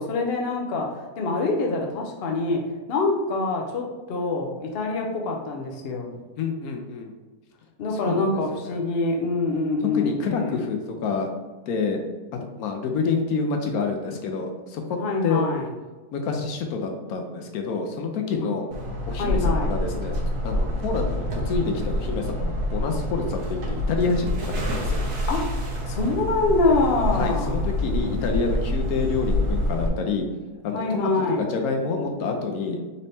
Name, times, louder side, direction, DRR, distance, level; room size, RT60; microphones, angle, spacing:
voice 1, 0.0-2.6 2.9-6.1 7.8-10.6 15.0-15.7 18.4-18.5 19.2-19.7 25.3-27.6 30.7-31.5, left 3 dB, 60° left, 1 dB, 0.7 m, -25 dB
voice 2, 6.4-7.1 8.0-8.8 9.9-11.3 11.7-12.0 12.6-15.5 16.1-18.7 19.1-20.2 20.4-25.0 27.1-30.3 30.6-31.1 31.4-32.8, left 4 dB, 75° left, 3 dB, 1.1 m, -28 dB
sound 1, 18.7-29.9, left 1 dB, 55° right, 1.1 m, -27 dB
4.0 x 3.3 x 2.7 m, 1.3 s
omnidirectional pair, 1.6 m